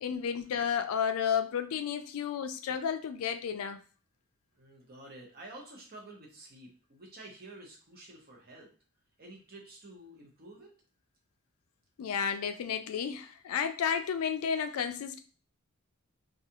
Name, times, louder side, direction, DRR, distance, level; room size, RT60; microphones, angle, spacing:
voice 1, 0.0-3.8 12.0-15.2, left 7 dB, 80° left, 8 dB, 0.4 m, -32 dB
voice 2, 4.5-8.7 9.2-10.7, right 2 dB, 45° right, -1 dB, 0.8 m, -50 dB
2.4 x 2.3 x 2.7 m, 0.38 s
head